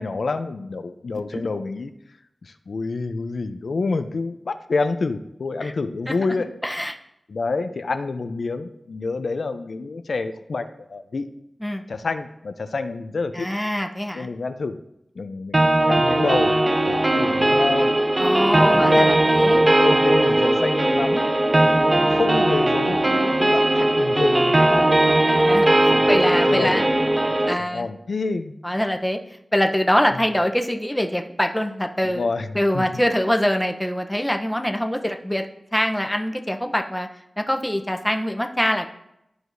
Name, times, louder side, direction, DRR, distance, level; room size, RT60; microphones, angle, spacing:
voice 1, 0.0-1.9 2.4-6.5 7.3-11.3 11.9-13.5 14.1-14.8 15.2-16.6 16.8-17.9 18.5-25.0 25.9-26.1 26.5-27.1 27.6-28.6 30.1-30.2 32.0-32.5 32.7-32.8, left 3 dB, 80° left, 9 dB, 0.5 m, -28 dB
voice 2, 6.6-7.0 11.6-11.8 13.3-14.3 18.2-19.6 21.8-22.2 25.2-26.9 27.5-27.9 28.6-29.2 29.5-32.3 32.5-35.5 35.7-37.1 37.4-38.9, equal, 5° left, 5 dB, 0.7 m, -24 dB
sound 1, 15.5-27.5, right 1 dB, 35° right, 0.5 m, -18 dB
12.5 x 4.7 x 2.6 m, 0.82 s
wide cardioid pair, 60°, 0 cm